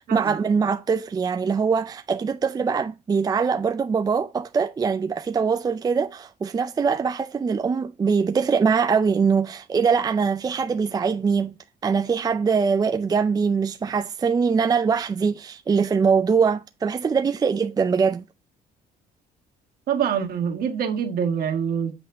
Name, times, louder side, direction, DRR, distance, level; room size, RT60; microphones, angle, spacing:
voice 1, 0.0-11.5 11.8-18.2, right 5 dB, 25° right, 0.5 m, -22 dB
voice 2, 19.9-21.9, right 8 dB, 60° right, 1.7 m, -25 dB
7.7 x 4.1 x 3.5 m
cardioid pair, 110°, 17 cm